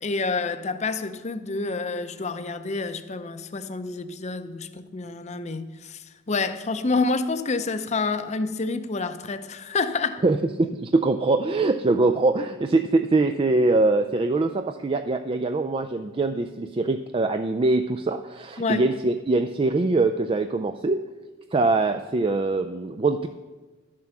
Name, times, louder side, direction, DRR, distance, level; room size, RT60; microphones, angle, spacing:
voice 1, 0.0-10.2 18.6-18.8, left 3 dB, 35° left, 10 dB, 0.6 m, -28 dB
voice 2, 10.2-21.0 21.5-23.3, right 3 dB, 25° right, 8 dB, 0.3 m, -23 dB
12.0 x 7.5 x 5.9 m, 1.3 s
head